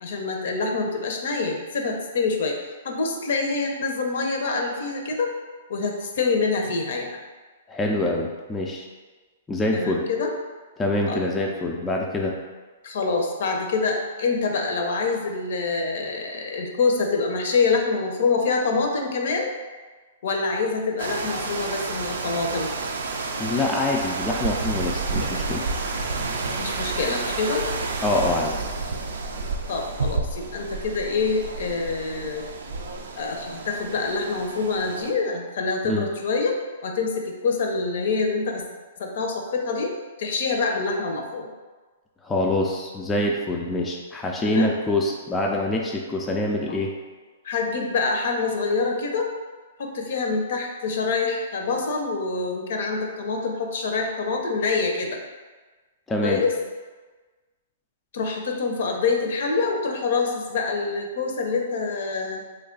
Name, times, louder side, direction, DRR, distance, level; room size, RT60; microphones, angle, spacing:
voice 1, 0.0-2.6 2.8-5.3 5.7-7.2 9.7-10.3 11.0-11.2 12.8-19.5 20.2-22.7 26.6-27.7 29.7-32.5 33.2-36.6 36.8-38.6 39.0-39.9 40.2-41.5 44.4-44.7 46.7-46.8 47.4-49.3 49.8-55.2 56.2-56.5 58.1-62.4, left 4 dB, 65° left, 2 dB, 0.6 m, -26 dB
voice 2, 7.7-8.9 9.5-10.0 10.8-12.4 23.4-25.6 28.0-28.6 35.8-36.1 42.2-46.9 56.1-56.4, left 1 dB, 10° left, -1 dB, 0.3 m, -25 dB
sound 1, 21.0-35.1, right 3 dB, 75° right, 0.4 m, -30 dB
3.1 x 2.3 x 3.8 m, 1.3 s
hypercardioid pair, 140°, 0 cm